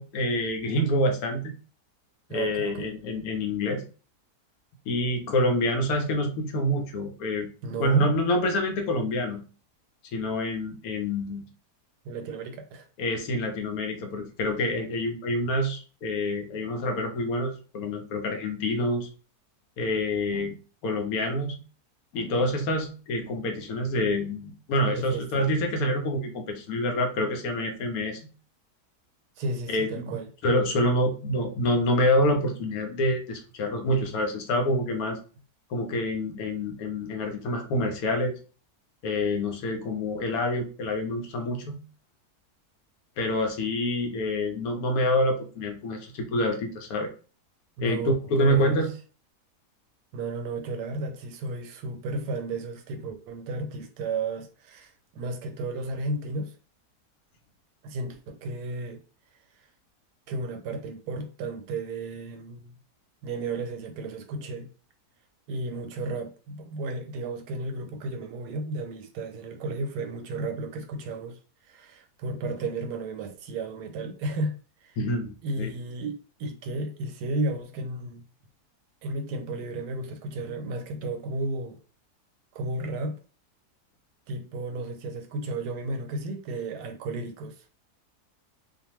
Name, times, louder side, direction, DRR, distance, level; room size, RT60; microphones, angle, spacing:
voice 1, 0.0-1.5 2.3-3.8 4.9-7.5 7.8-9.4 10.1-11.4 13.0-19.1 19.8-20.6 20.8-21.6 22.1-28.3 29.7-30.2 30.4-35.2 35.7-38.3 39.0-41.8 43.2-47.1 47.8-48.9 75.0-75.7, left 1 dB, 75° left, 1.0 m, -27 dB
voice 2, 2.3-2.9 7.6-8.1 12.0-12.9 24.9-25.5 29.4-30.3 47.8-48.8 50.1-56.5 57.8-59.0 60.3-62.7 63.2-64.7 65.5-74.6 74.8-75.0 75.4-78.2 79.0-81.8 82.5-83.2 84.3-87.6, right 2 dB, 90° right, 1.1 m, -33 dB
2.4 x 2.4 x 3.0 m
omnidirectional pair, 1.7 m